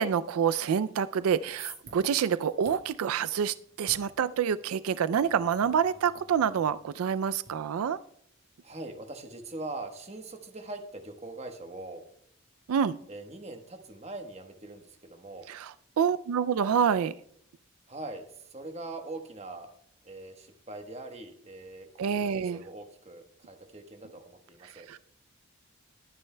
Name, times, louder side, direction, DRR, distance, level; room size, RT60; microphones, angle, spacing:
voice 1, 0.0-8.0 12.7-13.0 15.5-17.1 22.0-22.6 24.9-25.0, right 7 dB, 80° right, 15 dB, 0.4 m, -27 dB
sound 1, 1.2-7.5, right 5 dB, 60° right, 5.9 m, -52 dB
voice 2, 8.6-12.0 13.1-15.5 17.9-19.7 20.0-24.9, right 2 dB, 30° right, 5 dB, 1.1 m, -42 dB
21.5 x 9.6 x 2.2 m, 0.67 s
head